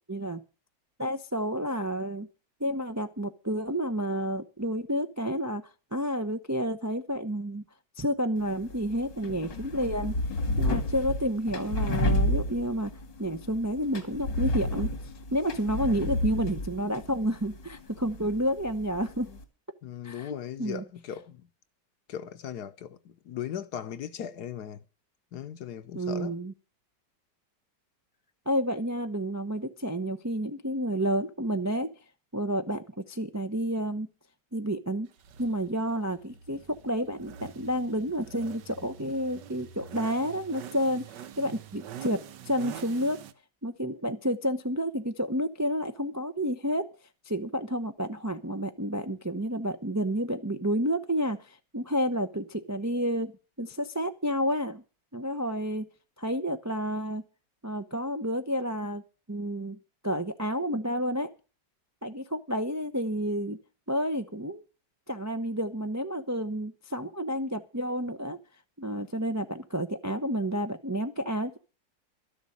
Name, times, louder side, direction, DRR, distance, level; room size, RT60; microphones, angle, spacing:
voice 1, 0.1-0.4 1.0-2.3 2.6-5.6 5.9-7.6 8.0-10.1 10.6-12.9 13.2-14.9 15.3-19.3 20.0-20.8 25.9-26.5 28.5-31.9 32.3-34.1 34.5-35.1 35.4-41.0 41.4-43.2 43.6-46.9 47.3-53.3 53.6-54.8 55.1-55.9 56.2-57.2 57.6-59.0 59.3-59.8 60.0-61.3 62.0-63.6 63.9-64.6 65.1-68.4 68.8-71.6, equal, 25° right, 0.3 m, -30 dB
sound 1, 8.4-19.4, left 1 dB, 85° left, 2.9 m, -32 dB
voice 2, 19.8-21.5 22.1-24.8 25.3-26.4, left 9 dB, 65° left, 1.4 m, -38 dB
sound 2, 35.2-43.3, right 8 dB, 75° right, 1.5 m, -45 dB
13.0 x 7.1 x 8.6 m
omnidirectional pair, 1.9 m